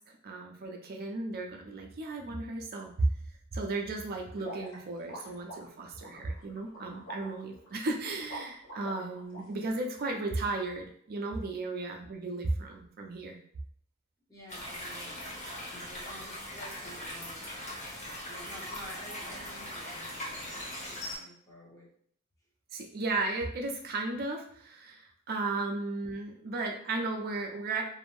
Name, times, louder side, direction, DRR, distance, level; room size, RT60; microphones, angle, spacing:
voice 1, 0.2-3.1 3.5-13.4 22.7-27.8, right 2 dB, 45° right, 1 dB, 0.5 m, -34 dB
sound 1, 4.4-9.4, equal, 60° left, 0.9 m, -45 dB
voice 2, 14.3-15.4 15.7-17.5 18.0-20.8 21.1-21.9, equal, 15° left, -5 dB, 0.7 m, -50 dB
sound 2, 14.5-21.2, left 1 dB, 35° left, 1.0 m, -40 dB
2.6 x 2.1 x 3.0 m, 0.65 s
head